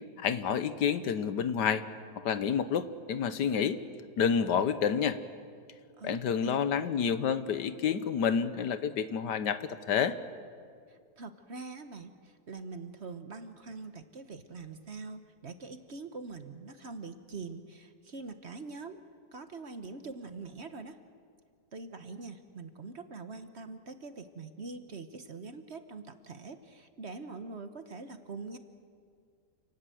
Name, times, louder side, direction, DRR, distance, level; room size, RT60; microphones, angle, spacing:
voice 1, 0.2-1.8 2.2-3.8 4.2-5.2 6.0-10.1, left 7 dB, 80° left, 12 dB, 1.6 m, -29 dB
voice 2, 6.0-6.5 10.9-19.0 19.3-21.0 21.7-28.6, right 4 dB, 45° right, 9 dB, 1.2 m, -44 dB
29.0 x 18.5 x 7.8 m, 2.2 s
omnidirectional pair, 1.8 m